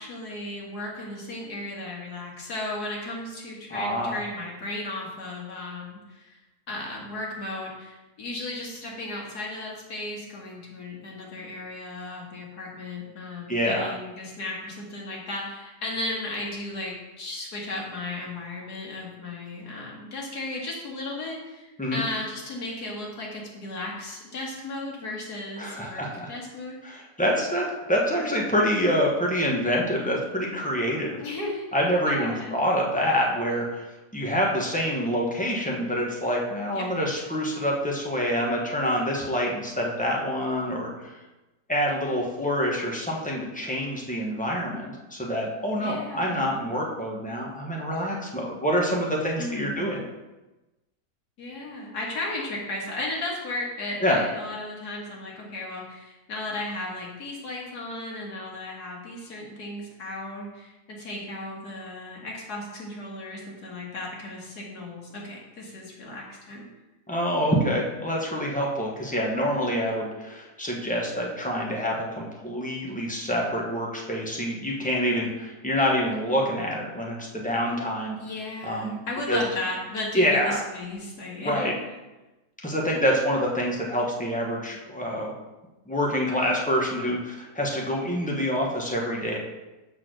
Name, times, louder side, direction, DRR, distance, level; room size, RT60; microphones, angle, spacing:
voice 1, 0.0-6.4 6.7-27.0 31.2-31.7 32.0-32.6 36.7-36.8 45.8-46.4 49.4-49.8 51.4-66.7 78.2-81.8, left 2 dB, 75° left, -2 dB, 2.2 m, -35 dB
voice 2, 3.7-4.2 13.5-13.9 21.8-22.0 25.6-26.3 26.8-31.2 31.7-33.9 34.1-41.2 41.7-50.0 54.0-54.2 67.1-78.2 78.6-79.0 79.3-79.4 80.1-80.6 81.4-81.7 82.6-85.3 85.9-89.4, equal, 5° left, -2 dB, 1.1 m, -26 dB
6.2 x 4.5 x 6.3 m, 1.1 s
omnidirectional pair, 1.7 m